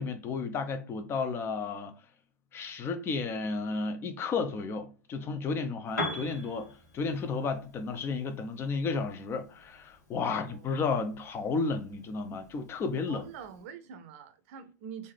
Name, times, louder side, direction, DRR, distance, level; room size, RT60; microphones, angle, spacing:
voice 1, 0.0-1.9 2.5-13.2, left 4 dB, 25° left, 0.6 m, -33 dB
Piano, 5.8-13.7, left 1 dB, 75° left, 1.4 m, -43 dB
voice 2, 10.2-10.7 13.1-15.1, right 7 dB, 50° right, 0.6 m, -45 dB
3.6 x 2.6 x 3.1 m
figure-of-eight pair, 90°, 9 cm